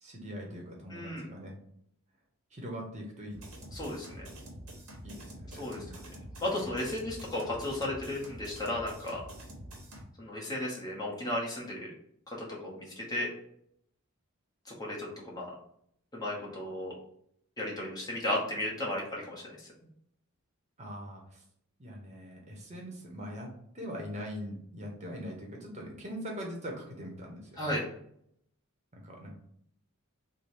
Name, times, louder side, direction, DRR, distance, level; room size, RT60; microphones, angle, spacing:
voice 1, 0.0-1.6 2.5-3.4 5.0-6.1 20.8-21.4 21.8-27.7 28.9-29.4, equal, 30° right, 0 dB, 0.9 m, -42 dB
voice 2, 0.9-1.2 3.7-4.3 5.6-9.2 10.2-11.9 12.3-13.3 14.6-15.5 16.1-16.9 17.6-19.7 27.6-27.8, left 1 dB, 20° left, -4 dB, 1.0 m, -35 dB
sound 1, 3.3-10.0, equal, 75° right, 1.0 m, -47 dB
3.3 x 2.2 x 4.3 m, 0.70 s
head